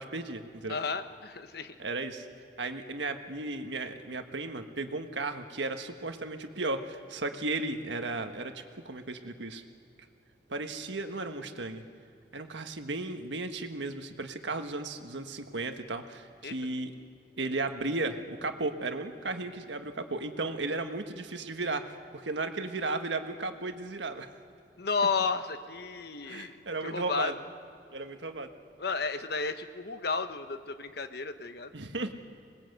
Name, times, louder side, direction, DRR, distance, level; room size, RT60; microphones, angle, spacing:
voice 1, 0.0-0.8 1.8-2.3 2.6-9.6 10.5-11.8 12.3-16.9 17.4-24.3 26.3-27.3 27.9-28.5 31.7-32.1, right 2 dB, 90° right, 6 dB, 1.5 m, -35 dB
voice 2, 0.7-1.7 16.4-16.5 24.8-27.3 28.8-31.8, left 4 dB, 60° left, 9 dB, 1.1 m, -33 dB
26.0 x 20.0 x 8.0 m, 2.5 s
head